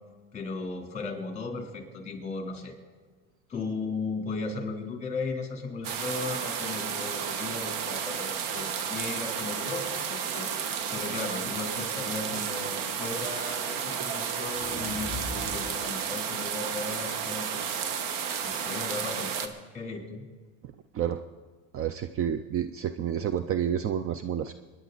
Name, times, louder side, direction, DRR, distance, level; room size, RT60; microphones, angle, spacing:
voice 1, 0.3-2.7 3.5-17.9 18.4-20.2, left 3 dB, 20° left, 3 dB, 3.2 m, -36 dB
sound 1, 5.8-19.5, right 7 dB, 60° right, 1.3 m, -32 dB
sound 2, 14.5-16.0, left 1 dB, 10° right, 2.6 m, -39 dB
voice 2, 21.7-24.5, right 9 dB, 35° right, 11 dB, 0.6 m, -29 dB
23.0 x 10.5 x 4.0 m, 1.4 s
supercardioid pair, 115°, 37 cm